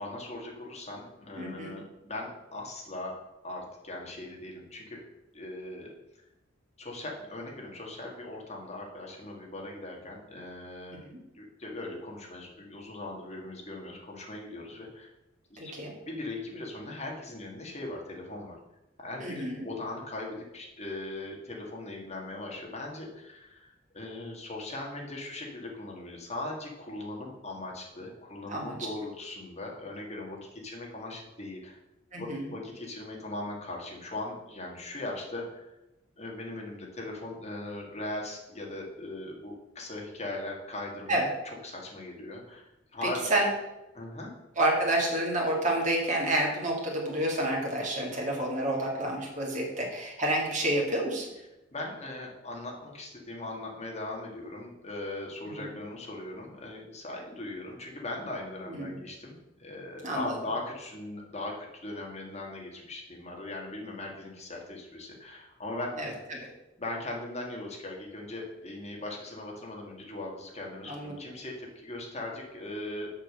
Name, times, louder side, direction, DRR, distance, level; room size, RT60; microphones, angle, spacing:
voice 1, 0.0-3.2 3.4-5.0 5.3-5.9 6.8-11.0 11.3-15.1 15.5-15.7 16.1-18.6 19.0-31.8 32.2-35.7 36.2-41.2 41.6-43.3 43.9-44.3 51.7-65.9 66.8-73.1, left 2 dB, 35° left, -1 dB, 1.9 m, -39 dB
voice 2, 1.4-1.8 11.1-11.2 15.6-15.9 19.2-19.7 28.5-28.7 32.1-32.5 41.1-41.3 43.0-43.5 44.6-51.3 55.6-55.7 58.7-59.0 60.0-60.4 66.0-66.4 70.8-71.2, right 1 dB, 40° right, -2 dB, 2.3 m, -29 dB
6.5 x 5.9 x 6.7 m, 0.94 s
head